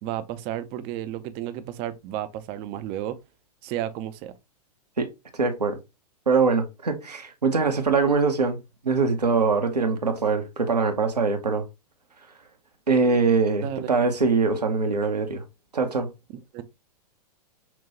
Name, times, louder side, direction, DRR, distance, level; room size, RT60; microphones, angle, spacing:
voice 1, 0.0-3.2 3.6-4.3 13.6-13.9 16.5-16.6, right 12 dB, 30° right, 0.4 m, -32 dB
voice 2, 5.3-5.8 6.3-8.6 8.8-11.6 12.9-15.4 15.7-16.1, right 4 dB, 80° right, 0.8 m, -23 dB
5.9 x 2.2 x 2.8 m
figure-of-eight pair, 105°, 20 cm